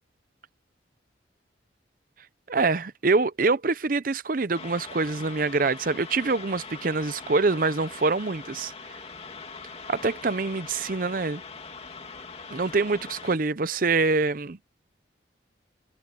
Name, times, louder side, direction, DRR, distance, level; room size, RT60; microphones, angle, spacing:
voice 1, 2.5-8.7 9.9-11.4 12.5-14.6, right 3 dB, 50° right, 0.7 m, -25 dB
sound 1, 4.5-13.4, left 4 dB, 30° left, 2.3 m, -42 dB
head